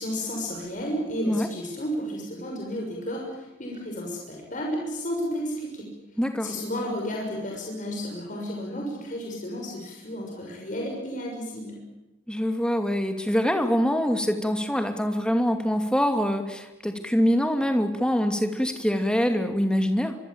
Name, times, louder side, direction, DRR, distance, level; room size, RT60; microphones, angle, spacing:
voice 1, 0.0-5.9 6.4-11.8, equal, 40° left, -1 dB, 6.3 m, -32 dB
voice 2, 6.2-6.5 12.3-20.2, equal, 5° left, 6 dB, 2.6 m, -24 dB
25.0 x 24.0 x 8.7 m, 1.0 s
head